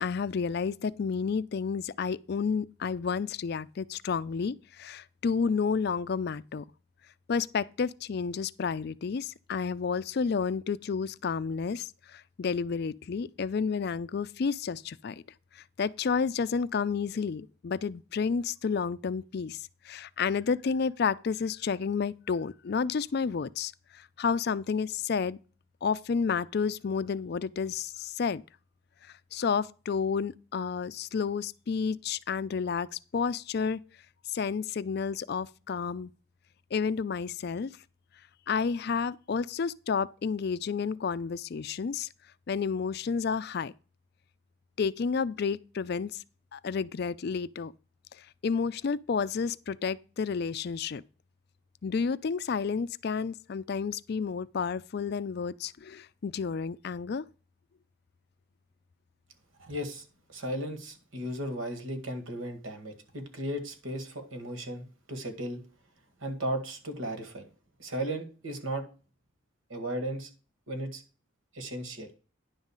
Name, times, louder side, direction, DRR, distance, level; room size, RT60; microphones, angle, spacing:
voice 1, 0.0-6.6 7.3-15.2 15.5-19.6 19.8-25.4 25.8-28.4 29.3-32.9 33.1-33.8 34.3-36.1 36.7-37.7 38.5-42.1 42.5-43.7 44.8-46.2 46.5-47.7 48.2-51.0 51.8-57.3, left 5 dB, 50° left, 0.4 m, -31 dB
voice 2, 59.6-60.0 60.3-65.6 66.2-67.5 67.8-68.8 69.7-70.3 70.7-71.0 71.5-72.1, right 1 dB, 75° right, 1.9 m, -35 dB
10.5 x 3.8 x 7.2 m
head